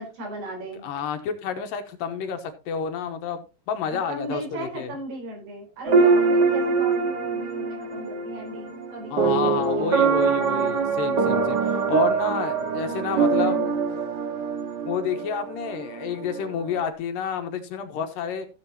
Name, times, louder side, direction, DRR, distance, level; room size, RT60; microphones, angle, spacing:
voice 1, 0.0-0.9 3.9-10.4 12.8-13.8, right 1 dB, 80° right, 6.2 m, -37 dB
voice 2, 0.8-3.4 3.7-4.9 9.1-13.6 14.9-18.5, left 7 dB, 75° left, 2.4 m, -29 dB
sound 1, 5.9-16.9, right 5 dB, 60° right, 1.1 m, -24 dB
16.0 x 7.5 x 2.9 m
omnidirectional pair, 4.5 m